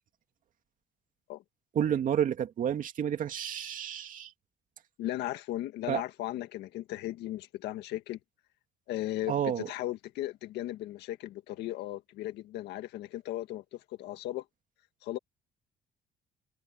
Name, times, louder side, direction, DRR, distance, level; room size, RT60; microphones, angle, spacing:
voice 1, 1.7-4.3 5.9-6.0 9.3-9.7, right 9 dB, 50° right, 2.4 m, -30 dB
voice 2, 5.0-8.2 8.9-14.5 15.0-15.2, left 14 dB, 80° left, 1.9 m, -36 dB
cardioid pair, 110°, 17 cm